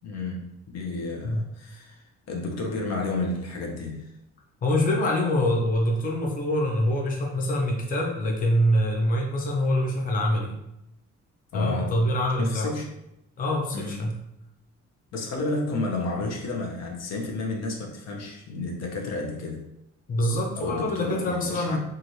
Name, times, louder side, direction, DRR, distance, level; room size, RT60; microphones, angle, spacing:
voice 1, 0.0-2.0 2.3-4.1 11.5-12.1 12.4-12.9 13.7-14.1 15.1-19.7 20.6-21.8, left 2 dB, 60° left, 1 dB, 0.7 m, -31 dB
voice 2, 4.6-10.5 11.5-12.7 13.4-14.1 20.1-21.8, left 1 dB, 30° left, 0 dB, 0.5 m, -25 dB
3.0 x 2.5 x 2.7 m, 0.84 s
cardioid pair, 90°, 30 cm